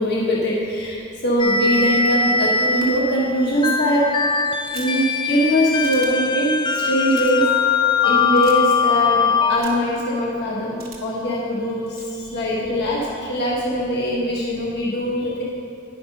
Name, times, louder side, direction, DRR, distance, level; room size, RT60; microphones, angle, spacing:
voice 1, 0.0-4.1 4.7-7.5 8.0-15.4, equal, 55° left, -5 dB, 1.3 m, -22 dB
sound 1, 1.4-9.6, left 5 dB, 25° left, 0.4 m, -21 dB
sound 2, 4.6-5.0 5.8-6.1 7.0-7.4 8.4-8.6 9.6-9.9 10.8-11.2 11.9-12.1, right 6 dB, 50° right, 1.3 m, -41 dB
10.5 x 5.9 x 5.3 m, 2.8 s
head